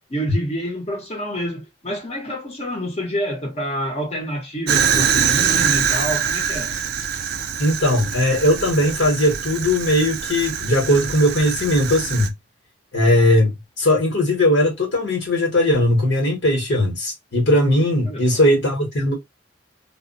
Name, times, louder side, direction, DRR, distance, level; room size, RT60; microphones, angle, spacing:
voice 1, 0.1-6.7 18.1-18.5, equal, 35° left, 0.8 m, -28 dB
Fire, 4.7-12.3, right 7 dB, 55° right, 0.4 m, -23 dB
voice 2, 7.6-12.3 12.9-19.2, left 1 dB, 75° left, 1.0 m, -19 dB
2.1 x 2.1 x 3.7 m
head